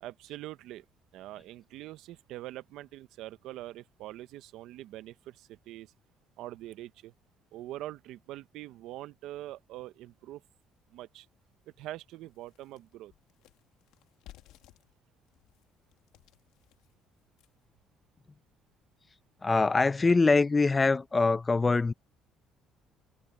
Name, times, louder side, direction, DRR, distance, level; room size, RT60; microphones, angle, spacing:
voice 1, 0.0-0.8 1.1-5.9 6.4-7.1 7.5-10.4 10.9-11.3 11.8-13.1, right 15 dB, 80° right, 0.8 m, -44 dB
sound 1, 10.6-10.7 11.2-11.3 11.7-17.7, left 15 dB, 90° left, 2.4 m, -59 dB
voice 2, 19.4-21.9, left 3 dB, 20° left, 0.6 m, -24 dB
cardioid pair, 110°, 0 cm